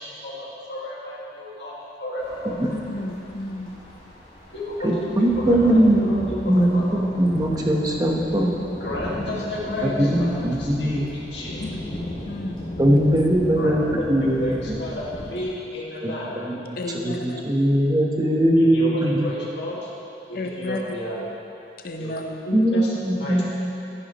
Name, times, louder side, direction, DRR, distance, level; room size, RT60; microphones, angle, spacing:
voice 1, 0.0-1.7 2.0-2.6 4.5-4.9 5.2-7.0 8.8-11.6 13.5-16.3 18.5-19.9 20.3-21.2 22.0-22.1 22.5-22.9 23.2-23.4, left 1 dB, 75° left, -6 dB, 1.9 m, -32 dB
sound 1, 2.2-15.4, left 1 dB, 30° left, 2.6 m, -36 dB
voice 2, 2.7-3.7 11.6-11.8 12.3-12.6 13.2-13.3 16.8-17.4 20.3-20.8 21.8-22.4, left 1 dB, 55° left, 3 dB, 0.8 m, -32 dB
voice 3, 4.8-6.1 6.4-6.8 7.1-8.5 9.8-11.0 12.8-14.8 16.0-16.1 16.4-16.6 16.9-19.3 22.5-23.4, right 1 dB, 20° right, -1 dB, 1.0 m, -20 dB
14.0 x 10.5 x 3.0 m, 2.8 s
head